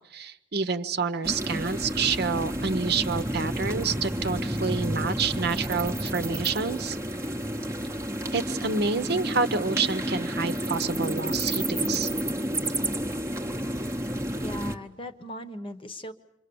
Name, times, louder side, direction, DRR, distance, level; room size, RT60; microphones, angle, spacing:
voice 1, 0.0-7.0 8.3-12.1, right 5 dB, 55° right, 10 dB, 0.9 m, -28 dB
sound 1, 1.2-14.7, right 1 dB, 15° right, 0.9 m, -30 dB
voice 2, 14.4-16.1, equal, 25° left, 10 dB, 1.1 m, -38 dB
28.0 x 24.0 x 7.0 m, 0.91 s
head